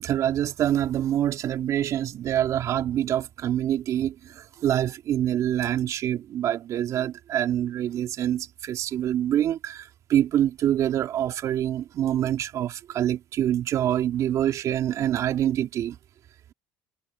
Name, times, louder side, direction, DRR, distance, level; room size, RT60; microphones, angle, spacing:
voice 1, 0.0-16.0, right 11 dB, 60° right, 3.4 m, -26 dB
supercardioid pair, 85°, 6 cm